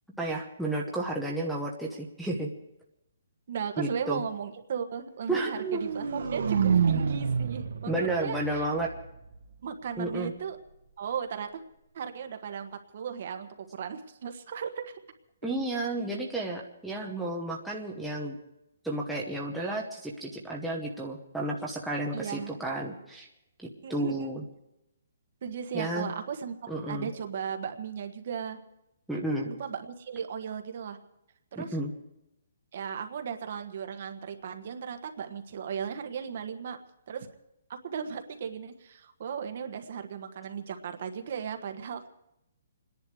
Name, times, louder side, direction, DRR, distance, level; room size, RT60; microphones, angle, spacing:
voice 1, 0.2-2.5 3.8-4.2 5.3-5.8 7.9-8.9 10.0-10.3 15.4-18.3 18.8-23.3 23.6-24.4 25.7-26.1 26.7-27.1 29.1-29.5 31.6-31.9, right 2 dB, ahead, -4 dB, 1.0 m, -32 dB
voice 2, 3.5-8.7 9.6-10.6 11.0-11.6 11.9-14.9 22.1-22.5 23.8-24.3 25.4-28.6 29.5-31.0 31.5-31.8 32.7-36.8 37.1-37.3 37.7-42.1, right 7 dB, 40° right, 7 dB, 1.5 m, -36 dB
sound 1, 5.5-9.5, right 6 dB, 55° right, 1.4 m, -29 dB
27.5 x 10.5 x 4.9 m, 0.85 s
hypercardioid pair, 180°, 0 cm